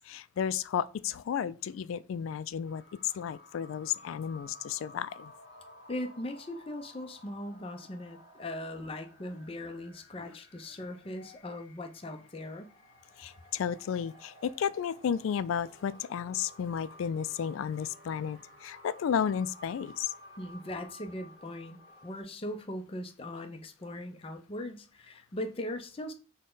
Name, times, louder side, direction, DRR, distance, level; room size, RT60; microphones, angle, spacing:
voice 1, 0.1-2.8 3.1-5.3 10.2-10.3 11.2-11.3 13.2-20.1, left 8 dB, 80° left, 0.3 m, -33 dB
sound 1, 2.6-22.2, left 1 dB, 50° left, 2.0 m, -55 dB
voice 2, 5.9-12.7 20.4-26.1, left 1 dB, 30° left, 0.5 m, -39 dB
6.3 x 2.2 x 3.8 m
head